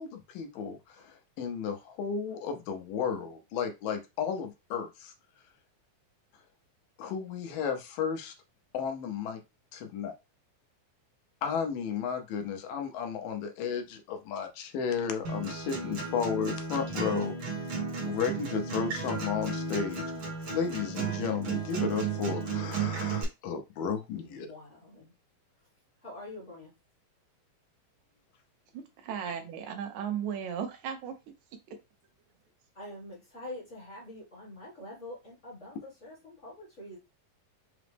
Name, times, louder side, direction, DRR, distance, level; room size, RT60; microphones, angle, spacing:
voice 1, 0.0-5.1 7.0-8.3 8.7-9.4 9.7-10.1 11.4-17.3 18.0-20.1 20.5-24.5, left 6 dB, 85° left, 6 dB, 2.4 m, -33 dB
Acoustic guitar, 15.2-23.2, right 5 dB, 55° right, 1.4 m, -34 dB
voice 2, 24.2-25.1 26.0-26.7 32.7-37.0, left 1 dB, 40° left, -5 dB, 1.0 m, -45 dB
voice 3, 28.7-31.2 31.7-31.8, right 8 dB, 75° right, 6 dB, 1.8 m, -36 dB
5.8 x 2.0 x 3.3 m, 0.25 s
omnidirectional pair, 3.9 m